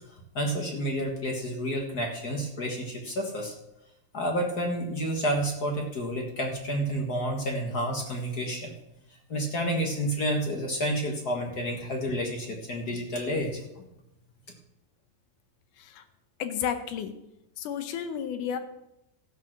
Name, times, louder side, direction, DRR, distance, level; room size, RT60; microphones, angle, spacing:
voice 1, 0.3-3.5 4.1-8.7 9.3-13.8, equal, 45° left, 1 dB, 1.2 m, -30 dB
voice 2, 16.4-17.1 17.6-18.6, left 8 dB, 70° left, 9 dB, 2.3 m, -32 dB
13.5 x 8.4 x 6.1 m, 0.87 s
omnidirectional pair, 4.1 m